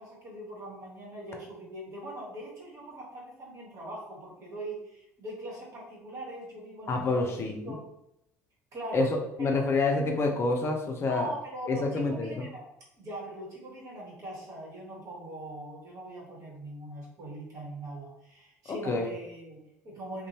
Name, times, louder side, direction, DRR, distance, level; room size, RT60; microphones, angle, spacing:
voice 1, 0.0-7.8 8.7-9.7 11.1-12.6 12.9-20.3, right 1 dB, 45° right, -4 dB, 1.2 m, -41 dB
voice 2, 6.9-7.8 8.9-9.1 9.4-11.3 11.7-12.5 18.7-19.1, left 3 dB, 35° left, 3 dB, 0.5 m, -27 dB
2.6 x 2.1 x 2.9 m, 0.81 s
figure-of-eight pair, 60°, 8 cm